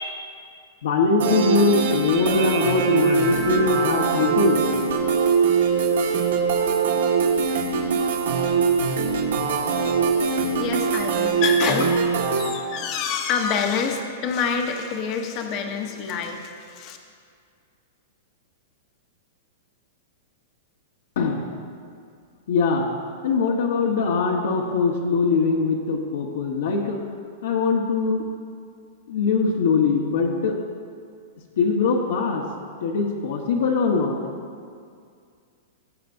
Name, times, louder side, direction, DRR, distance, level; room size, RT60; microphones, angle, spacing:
voice 1, 0.8-4.6 21.2-21.5 22.5-22.9 23.2-27.0 27.4-28.3 29.1-30.5 31.6-32.4 32.8-34.2, left 4 dB, 70° left, 0 dB, 1.1 m, -22 dB
sound 1, 1.2-12.5, right 5 dB, 85° right, 1.6 m, -22 dB
voice 2, 10.6-12.1 12.4-17.0, left 6 dB, 30° left, 4 dB, 0.8 m, -27 dB
18.0 x 8.3 x 2.6 m, 2.2 s
supercardioid pair, 170°, 0 cm